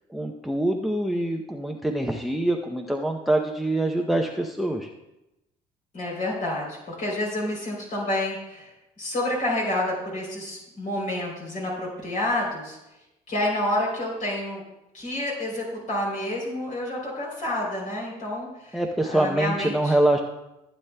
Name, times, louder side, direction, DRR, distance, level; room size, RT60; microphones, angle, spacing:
voice 1, 0.1-4.9 18.7-20.2, right 1 dB, ahead, 3 dB, 0.6 m, -24 dB
voice 2, 5.9-12.8 13.3-14.6 14.9-20.0, left 1 dB, 50° left, -3 dB, 3.3 m, -29 dB
15.5 x 8.8 x 2.2 m, 0.93 s
cardioid pair, 110°, 17 cm